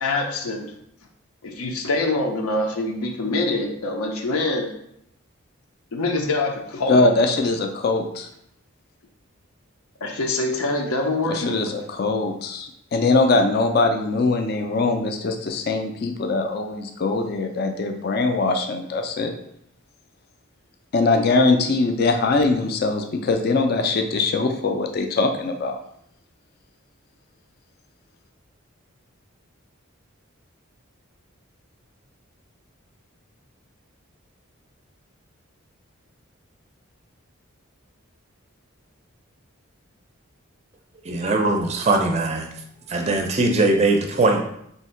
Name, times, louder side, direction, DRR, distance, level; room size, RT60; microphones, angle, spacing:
voice 1, 0.0-0.7 1.4-4.7 5.9-7.0 10.0-11.5, left 2 dB, 85° left, 2 dB, 0.6 m, -25 dB
voice 2, 6.9-8.3 11.3-19.3 20.9-25.8, left 3 dB, 45° left, 5 dB, 0.3 m, -22 dB
voice 3, 41.1-42.5 42.9-44.4, right 2 dB, 30° right, 3 dB, 0.4 m, -20 dB
3.4 x 2.7 x 4.3 m, 0.73 s
head